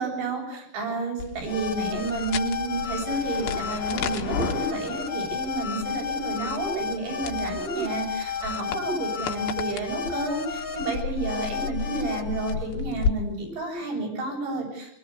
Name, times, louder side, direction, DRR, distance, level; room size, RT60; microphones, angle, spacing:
voice 1, 0.0-15.0, right 3 dB, 75° right, 1 dB, 10.0 m, -30 dB
sound 1, 1.2-13.1, left 6 dB, 85° left, 4.0 m, -34 dB
sound 2, 1.4-12.5, left 6 dB, 45° left, 1.7 m, -32 dB
24.0 x 23.5 x 8.4 m, 0.73 s
omnidirectional pair, 5.3 m